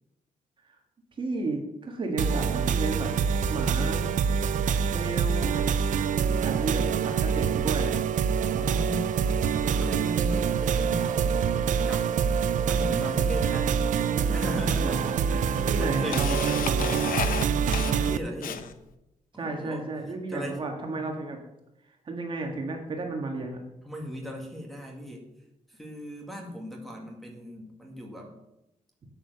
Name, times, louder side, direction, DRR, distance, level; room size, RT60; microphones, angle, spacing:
voice 1, 1.2-3.1 3.5-4.1 4.9-5.7 6.4-8.0 14.8-15.2 15.6-17.2 19.4-21.4 22.1-23.6, right 3 dB, 35° right, 2 dB, 1.7 m, -33 dB
sound 1, 2.2-18.2, right 7 dB, 65° right, 0.6 m, -25 dB
voice 2, 6.6-7.0 8.5-11.3 11.9-12.1 12.7-13.8 14.3-16.9 17.8-18.6 19.4-19.8 20.3-20.6 23.8-25.3 25.7-28.3, equal, ahead, -1 dB, 2.0 m, -38 dB
Camera, 13.9-14.0 14.9-15.0 15.4-18.9, left 8 dB, 90° left, 0.8 m, -33 dB
8.9 x 8.8 x 6.7 m, 0.88 s
wide cardioid pair, 180°, 14 cm